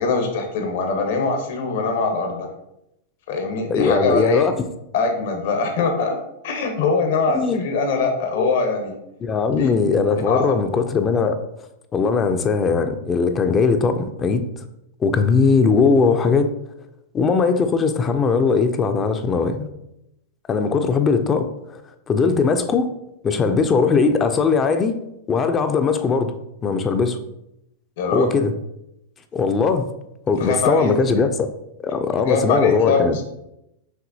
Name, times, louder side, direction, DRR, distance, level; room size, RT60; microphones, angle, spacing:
voice 1, 0.0-2.5 3.3-4.5 4.9-6.2 6.4-8.9 9.6-9.7 10.3-10.4 28.0-28.3 30.4-31.2 32.2-33.3, left 4 dB, 65° left, 4 dB, 0.9 m, -22 dB
voice 2, 3.7-4.6 7.3-7.6 8.3-8.5 9.2-11.4 11.9-14.5 15.0-16.5 17.1-19.7 20.5-21.8 22.1-22.9 23.2-25.0 25.3-26.3 26.6-27.2 28.1-28.5 29.3-29.9 30.3-31.5 31.8-33.2, left 5 dB, 20° left, 9 dB, 0.3 m, -19 dB
5.7 x 2.7 x 2.7 m, 0.83 s
supercardioid pair, 145°, 0 cm